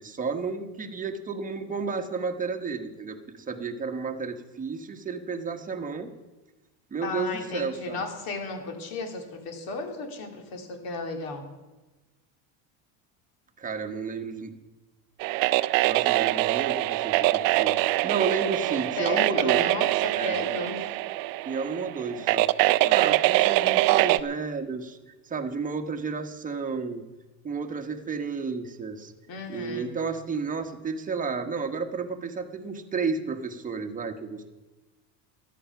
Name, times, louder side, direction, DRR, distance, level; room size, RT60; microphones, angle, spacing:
voice 1, 0.0-6.1 6.9-8.0 13.6-14.5 15.8-19.7 20.1-20.4 21.4-22.5 22.8-27.0 27.4-29.1 29.5-34.5, right 5 dB, 20° right, 4 dB, 1.2 m, -32 dB
voice 2, 7.0-11.5 19.0-20.9 22.2-22.3 29.3-29.9, left 3 dB, 55° left, 4 dB, 2.5 m, -34 dB
sound 1, 15.2-24.2, right 18 dB, 55° right, 0.5 m, -24 dB
13.5 x 10.5 x 5.8 m, 1.1 s
supercardioid pair, 125°, 42 cm